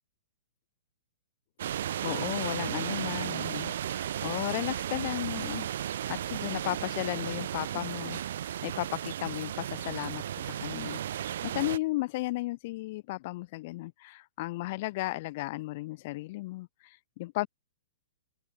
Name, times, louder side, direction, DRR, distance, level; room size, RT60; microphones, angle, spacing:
sound 1, 1.6-11.8, right 10 dB, 65° right, 5.0 m, -34 dB
voice 1, 2.0-8.2 8.6-17.5, left 20 dB, 50° left, 7.8 m, -35 dB
open air
hypercardioid pair, 125°, 0 cm